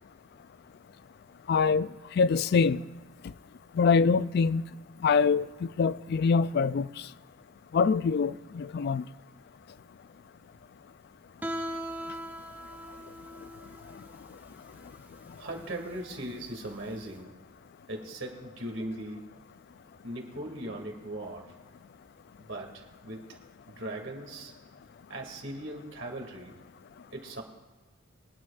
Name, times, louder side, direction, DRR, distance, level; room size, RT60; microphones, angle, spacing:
voice 1, 1.5-1.9 2.2-2.8 3.8-4.6 5.0-5.5 5.8-6.9 7.7-9.0, left 5 dB, 55° left, 0.3 m, -24 dB
Guitar, 11.4-17.1, equal, 10° right, 0.7 m, -40 dB
voice 2, 15.4-17.4 17.9-19.2 20.0-21.5 22.5-23.4 23.7-24.5 25.1-26.5 27.1-27.4, right 1 dB, 70° right, 2.3 m, -39 dB
25.5 x 9.7 x 2.5 m
head